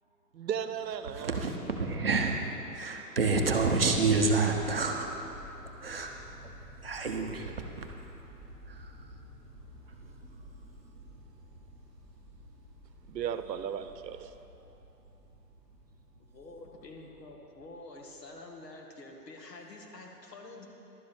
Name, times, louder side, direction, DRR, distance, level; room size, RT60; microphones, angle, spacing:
voice 1, 0.4-1.4 13.1-14.3, right 8 dB, 85° right, 11 dB, 0.8 m, -35 dB
voice 2, 1.1-5.2 5.8-6.1 6.8-7.9 8.7-9.0, right 3 dB, 35° right, 2 dB, 0.6 m, -29 dB
sound 1, 3.8-18.4, equal, 5° left, 1.0 m, -51 dB
voice 3, 16.3-20.7, left 2 dB, 75° left, 1 dB, 1.9 m, -47 dB
11.5 x 9.9 x 4.3 m, 2.9 s
hypercardioid pair, 175°, 49 cm